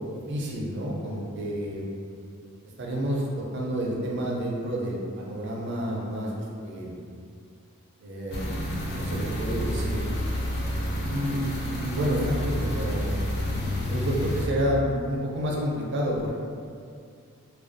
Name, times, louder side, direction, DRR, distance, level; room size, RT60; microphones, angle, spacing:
voice 1, 0.3-1.8 2.8-7.0 8.0-8.5 8.9-10.1 11.1-13.2 13.8-16.3, equal, 50° right, -3 dB, 0.4 m, -29 dB
sound 1, 8.3-14.5, equal, 50° left, 0.4 m, -29 dB
2.4 x 2.2 x 2.5 m, 2.3 s
head